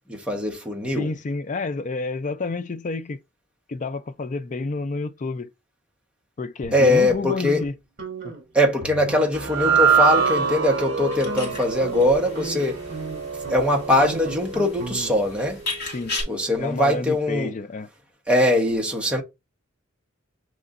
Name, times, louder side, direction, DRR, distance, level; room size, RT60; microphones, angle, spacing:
voice 1, 0.1-1.1 6.7-7.6 8.5-12.8 13.5-15.6 16.3-17.5 18.3-19.2, left 1 dB, 5° right, 1.1 m, -21 dB
voice 2, 1.0-3.2 3.7-5.5 6.4-7.7 8.2-8.3 15.9-16.2 16.6-17.9, left 3 dB, 40° left, 0.4 m, -29 dB
sound 1, 6.6-7.7 8.0-8.4 8.8-9.4 9.6-9.8 10.2-10.6 11.0-15.3, right 4 dB, 45° right, 2.3 m, -36 dB
sound 2, 9.3-15.7, right 6 dB, 75° right, 0.7 m, -25 dB
sound 3, 11.1-16.2, left 3 dB, 55° left, 1.9 m, -36 dB
6.6 x 3.1 x 2.5 m
head